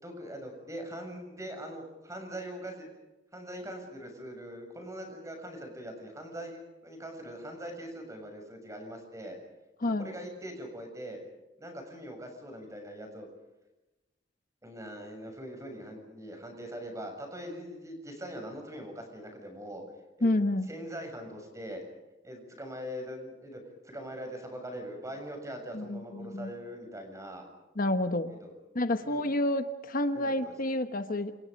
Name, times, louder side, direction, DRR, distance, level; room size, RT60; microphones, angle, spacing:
voice 1, 0.0-2.9 3.3-9.4 9.8-11.2 11.6-13.3 14.6-19.8 20.2-20.3 20.7-21.8 22.2-27.5 28.3-28.5 29.0-29.5 30.1-30.7, equal, 15° right, 4 dB, 7.3 m, -42 dB
voice 2, 20.2-20.7 25.7-26.5 27.8-28.3 28.7-31.4, left 1 dB, 50° left, 8 dB, 1.2 m, -29 dB
29.0 x 28.5 x 5.3 m, 1.0 s
head